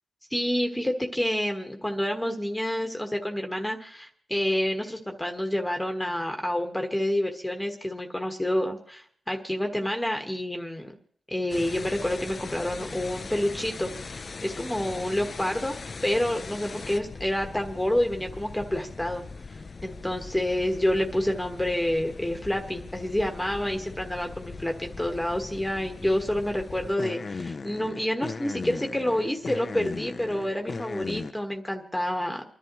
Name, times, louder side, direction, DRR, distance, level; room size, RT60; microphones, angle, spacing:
voice 1, 0.3-10.9 11.3-15.8 16.0-19.2 19.5-32.4, left 1 dB, 5° left, 3 dB, 1.5 m, -28 dB
sound 1, 11.5-31.3, left 4 dB, 45° left, 0.5 m, -39 dB
29.0 x 11.0 x 3.1 m, 0.62 s
cardioid pair, 75°, 0 cm